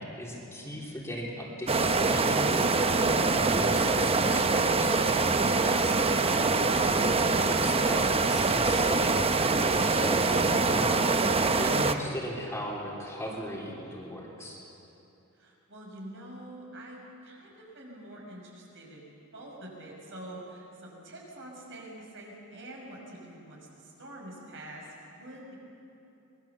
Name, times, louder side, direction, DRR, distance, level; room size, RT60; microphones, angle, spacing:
voice 1, 0.0-5.0 5.6-5.9 6.8-14.6, equal, 10° left, -4 dB, 3.4 m, -37 dB
sound 1, 1.7-11.9, right 3 dB, 25° right, 0.8 m, -24 dB
voice 2, 5.8-6.2 15.4-24.9 25.1-25.5, right 1 dB, 60° right, -2 dB, 6.0 m, -45 dB
24.5 x 20.5 x 7.2 m, 2.8 s
head